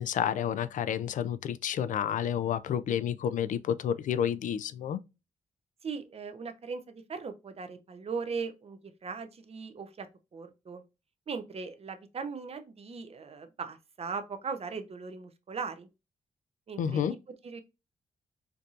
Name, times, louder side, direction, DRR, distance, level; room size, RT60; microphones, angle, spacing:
voice 1, 0.0-5.0 16.8-17.2, left 9 dB, 70° left, 0.4 m, -30 dB
voice 2, 5.8-10.1 10.3-10.8 11.3-15.9 16.7-17.2 17.4-17.6, right 5 dB, 50° right, 0.6 m, -39 dB
4.5 x 2.6 x 2.4 m
cardioid pair, 65°, 14 cm